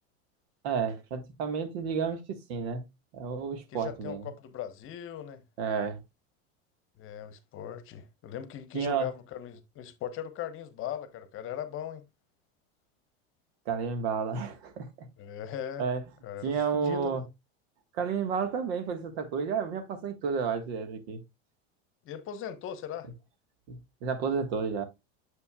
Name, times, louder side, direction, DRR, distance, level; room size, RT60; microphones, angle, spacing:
voice 1, 0.6-2.9 3.1-4.2 5.6-6.0 8.7-9.1 13.6-15.1 15.8-16.0 16.4-17.2 17.9-21.2 23.7-24.8, right 6 dB, 70° right, 1.6 m, -31 dB
voice 2, 3.7-5.4 7.0-12.0 15.2-15.8 16.2-17.2 22.0-23.1, left 9 dB, 40° left, 1.0 m, -39 dB
7.0 x 6.9 x 2.3 m
supercardioid pair, 120°, 32 cm